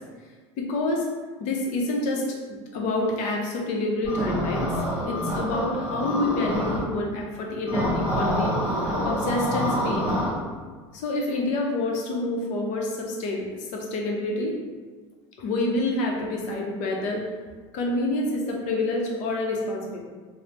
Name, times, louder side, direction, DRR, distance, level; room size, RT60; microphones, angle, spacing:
voice 1, 0.6-1.0 1.4-2.4 2.7-4.7 5.0-10.1 10.9-14.6 15.4-17.3 17.7-20.0, left 2 dB, 55° left, 0 dB, 0.6 m, -27 dB
sound 1, 4.0-6.8 7.7-10.3, equal, 10° right, 1.2 m, -26 dB
3.1 x 2.0 x 2.9 m, 1.5 s
supercardioid pair, 105°, 15 cm